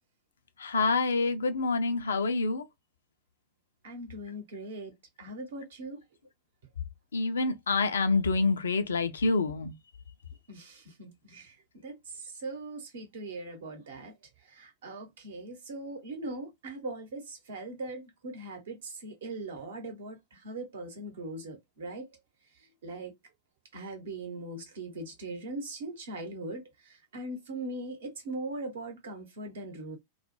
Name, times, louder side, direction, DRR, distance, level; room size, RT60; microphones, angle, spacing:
voice 1, 0.6-2.7 7.1-9.7, left 3 dB, 70° left, 0.4 m, -27 dB
voice 2, 3.8-6.0 10.5-11.6 11.8-14.1 14.4-22.1 22.8-23.1 23.7-30.0, right 2 dB, 60° right, 0.9 m, -40 dB
2.2 x 2.1 x 3.0 m
figure-of-eight pair, 90°, 0 cm